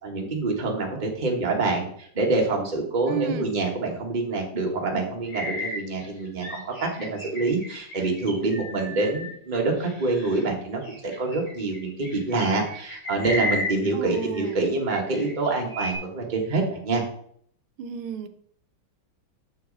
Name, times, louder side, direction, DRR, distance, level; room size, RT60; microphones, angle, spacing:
voice 1, 0.0-17.0, right 3 dB, 25° right, 0 dB, 1.4 m, -26 dB
voice 2, 3.0-3.5 13.9-14.7 17.8-18.3, right 8 dB, 80° right, 8 dB, 1.6 m, -31 dB
sound 1, 5.3-10.4 10.8-14.6 14.9-16.0, left 1 dB, 60° left, 4.2 m, -34 dB
7.3 x 6.6 x 4.0 m, 0.63 s
omnidirectional pair, 2.3 m